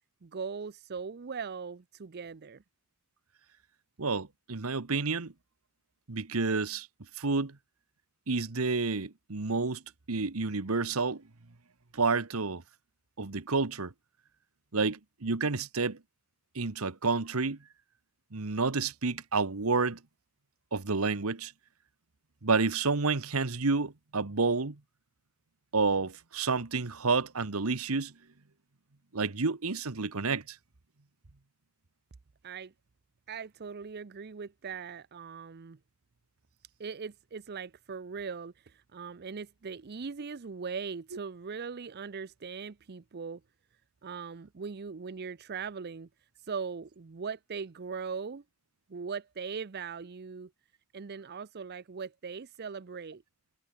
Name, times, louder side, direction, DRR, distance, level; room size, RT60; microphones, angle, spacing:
voice 1, 0.2-2.6 32.4-32.7 33.3-35.8 36.8-43.4 44.0-46.1 46.4-48.4 48.9-50.5 50.9-53.2, right 5 dB, 50° right, 0.6 m, -40 dB
voice 2, 4.0-5.3 6.1-6.9 7.2-7.6 8.3-9.8 10.1-11.2 11.9-12.6 13.2-13.9 14.7-16.0 16.5-17.6 18.3-20.0 20.7-21.5 22.4-24.8 25.7-28.1 29.1-30.6, right 4 dB, 85° right, 1.3 m, -29 dB
head